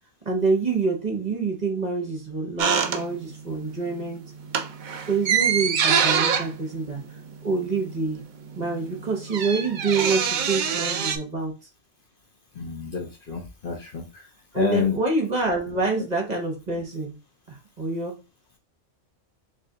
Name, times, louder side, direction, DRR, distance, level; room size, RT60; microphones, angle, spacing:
voice 1, 0.2-4.2 5.1-7.0 7.4-8.2 8.6-11.5 14.5-17.2 17.8-18.1, right 4 dB, 35° right, 1 dB, 1.0 m, -26 dB
sound 1, 2.6-3.5 3.8-4.1 4.4-7.9 8.2-8.3 8.5-11.2, right 7 dB, 60° right, 0.5 m, -25 dB
voice 2, 12.6-14.0 14.6-15.0, left 6 dB, 50° left, 2 dB, 0.8 m, -28 dB
3.3 x 2.7 x 3.8 m, 0.28 s
omnidirectional pair, 1.3 m